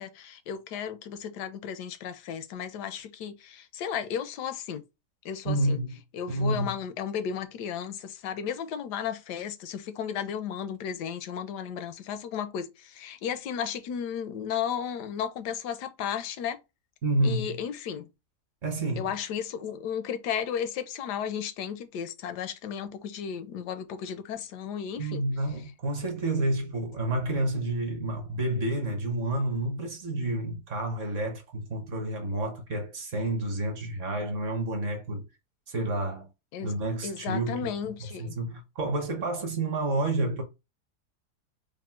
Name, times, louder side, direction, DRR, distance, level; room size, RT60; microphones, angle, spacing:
voice 1, 0.0-4.8 5.2-5.8 6.1-16.6 17.2-18.1 19.0-25.2 36.5-36.7 37.0-38.4, left 8 dB, 85° left, 1.2 m, -34 dB
voice 2, 5.4-6.0 6.3-6.7 17.0-17.6 18.6-19.1 25.0-35.3 35.7-36.3 36.6-37.7 38.2-40.4, right 2 dB, 55° right, 1.1 m, -29 dB
3.5 x 2.1 x 4.3 m
omnidirectional pair, 1.8 m